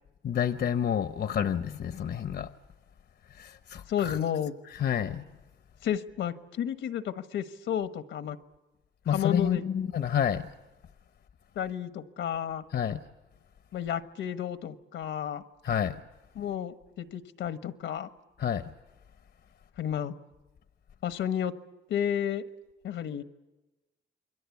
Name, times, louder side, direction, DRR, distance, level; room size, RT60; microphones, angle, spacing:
voice 1, 0.2-2.5 3.4-4.2 4.7-5.2 9.1-10.4 12.7-13.0 15.6-16.0 18.4-18.6, left 8 dB, 55° left, 0.9 m, -29 dB
voice 2, 3.9-4.5 5.8-8.4 9.1-9.6 11.5-12.6 13.7-15.4 16.3-18.1 19.8-20.1 21.0-21.5 21.9-22.4 22.8-23.2, left 9 dB, 75° left, 1.2 m, -32 dB
28.0 x 22.0 x 8.4 m
cardioid pair, 90°, 20 cm